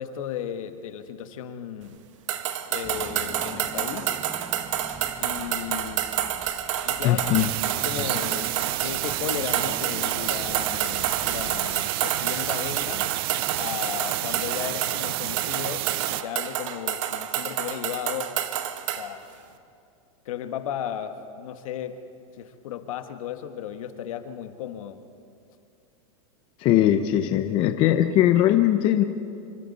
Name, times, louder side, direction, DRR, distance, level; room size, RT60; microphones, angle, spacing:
voice 1, 0.0-2.0 2.7-4.1 5.2-6.1 6.8-7.5 7.8-18.3 18.9-19.3 20.2-22.0 22.4-25.0, left 9 dB, 70° left, 8 dB, 1.5 m, -35 dB
sound 1, 2.3-19.1, right 11 dB, 60° right, 1.3 m, -29 dB
Car / Engine, 2.8-12.0, right 3 dB, 10° right, 0.7 m, -44 dB
voice 2, 7.0-7.5 26.6-29.0, left 12 dB, 30° left, 7 dB, 0.7 m, -20 dB
sound 2, 7.4-16.2, right 18 dB, 40° right, 0.4 m, -30 dB
26.5 x 25.0 x 4.2 m, 2.5 s
supercardioid pair, 165°, 18 cm